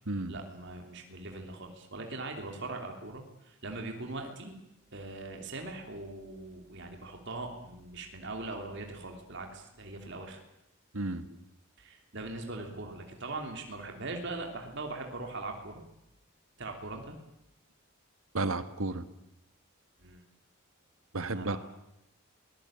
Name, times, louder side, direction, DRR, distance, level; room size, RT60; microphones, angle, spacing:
voice 1, 0.1-4.5 4.9-10.4 11.8-15.8 16.6-17.2 20.0-20.2 21.1-21.6, right 2 dB, 55° right, 3 dB, 3.2 m, -41 dB
voice 2, 10.9-11.3 18.3-19.1 21.1-21.6, right 2 dB, 75° right, 12 dB, 1.6 m, -32 dB
24.5 x 20.0 x 8.9 m, 0.83 s
head